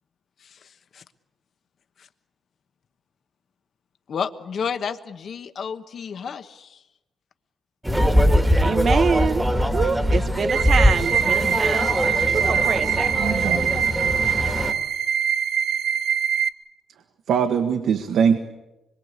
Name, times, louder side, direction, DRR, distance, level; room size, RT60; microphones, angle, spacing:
voice 1, 0.4-1.0 2.0-2.1 4.1-6.8, left 6 dB, 50° left, 1.1 m, -31 dB
sound 1, 7.8-14.7, equal, 5° right, 1.6 m, -21 dB
voice 2, 8.6-9.4 9.7-12.0 12.3-13.1, right 5 dB, 40° right, 0.9 m, -25 dB
sound 2, 10.5-16.5, right 8 dB, 60° right, 1.2 m, -23 dB
voice 3, 13.1-13.7 14.5-14.6 17.3-18.4, right 7 dB, 85° right, 1.6 m, -22 dB
26.5 x 23.0 x 8.3 m
wide cardioid pair, 175°, 0 cm